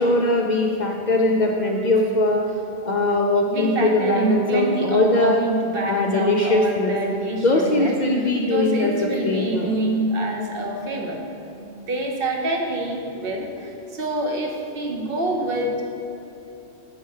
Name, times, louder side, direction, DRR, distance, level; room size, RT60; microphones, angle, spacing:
voice 1, 0.0-2.4 2.8-5.4 5.9-7.0 7.4-9.7, left 2 dB, 55° left, 0 dB, 0.5 m, -21 dB
voice 2, 3.5-8.0 8.4-11.2 11.5-15.8, right 1 dB, 55° right, 0 dB, 1.0 m, -26 dB
6.6 x 5.6 x 4.8 m, 3.0 s
omnidirectional pair, 1.1 m